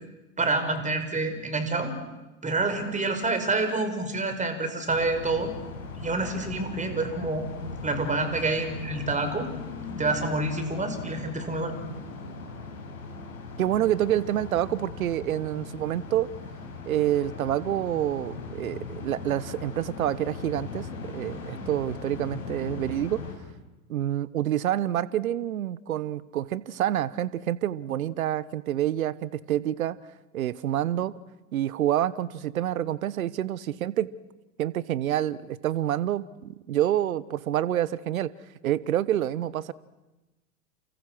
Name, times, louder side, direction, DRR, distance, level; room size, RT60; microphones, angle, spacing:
voice 1, 0.4-1.9 2.4-5.5 6.0-7.5 7.8-9.5 9.9-11.7, right 3 dB, 15° right, 8 dB, 5.6 m, -27 dB
sound 1, 4.9-23.4, left 4 dB, 85° left, 5.4 m, -39 dB
voice 2, 13.6-16.3 16.9-23.2 23.9-30.0 30.3-31.1 31.5-34.1 34.6-38.3 38.6-39.7, right 12 dB, 75° right, 19 dB, 1.2 m, -27 dB
29.5 x 29.5 x 6.3 m, 1.1 s
hypercardioid pair, 85°, 42 cm